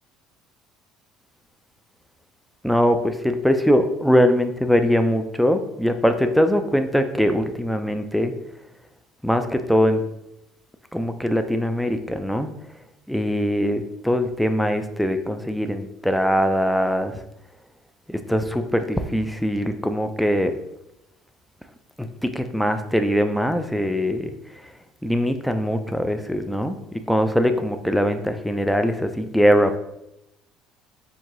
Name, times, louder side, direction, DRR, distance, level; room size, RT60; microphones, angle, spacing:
voice 1, 2.6-8.3 9.2-10.0 10.9-12.5 13.1-17.2 18.1-20.6 22.0-24.3 25.0-29.8, equal, ahead, 7 dB, 0.4 m, -22 dB
4.6 x 2.6 x 3.7 m, 0.85 s
cardioid pair, 115°, 0 cm